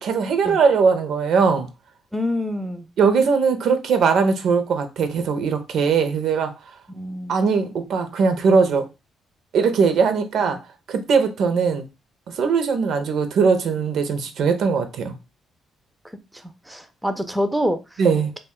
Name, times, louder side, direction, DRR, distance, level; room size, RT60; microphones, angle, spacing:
voice 1, 0.0-1.7 3.0-6.5 7.3-8.8 9.5-10.6 10.9-11.9 12.4-15.1 18.0-18.3, right 5 dB, 70° right, 0.5 m, -20 dB
voice 2, 2.1-2.9 6.9-7.5 10.4-10.6 16.3-18.0, equal, 5° right, 0.4 m, -27 dB
2.3 x 2.1 x 3.5 m
cardioid pair, 90°, 0 cm